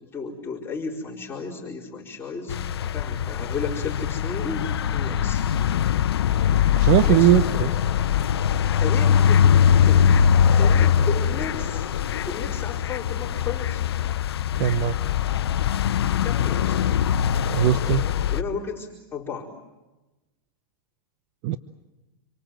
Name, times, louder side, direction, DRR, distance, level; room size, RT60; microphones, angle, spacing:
voice 1, 0.0-5.5 7.0-7.7 8.8-11.9 12.3-13.8 16.2-16.8 18.3-19.5, left 5 dB, 15° left, -5 dB, 4.7 m, -34 dB
sound 1, 2.5-18.4, left 8 dB, 85° left, 0.8 m, -22 dB
voice 2, 6.8-7.7 14.6-15.0 17.5-18.0 21.4-21.6, right 13 dB, 50° right, 13 dB, 0.9 m, -20 dB
27.5 x 24.0 x 7.8 m, 1.1 s
hypercardioid pair, 120°, 13 cm